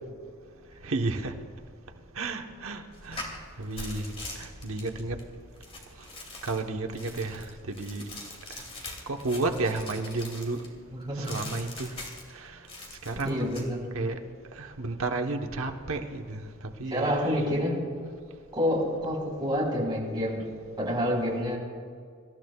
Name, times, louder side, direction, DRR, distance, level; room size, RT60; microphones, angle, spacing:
voice 1, 0.8-1.3 2.2-3.2 3.6-5.2 6.4-8.0 9.1-10.6 11.2-11.9 12.3-12.6 13.0-13.5 13.9-14.2 14.6-16.4 16.8-17.4, right 3 dB, 75° right, 4 dB, 1.1 m, -32 dB
sound 1, 2.9-10.7 11.2-12.4 12.7-13.7, left 2 dB, 30° left, 2.4 m, -42 dB
voice 2, 10.9-11.4 13.2-13.9 16.9-17.8 18.5-20.4 20.8-21.6, equal, 20° right, -3 dB, 4.2 m, -28 dB
25.5 x 13.5 x 2.3 m, 2.1 s
head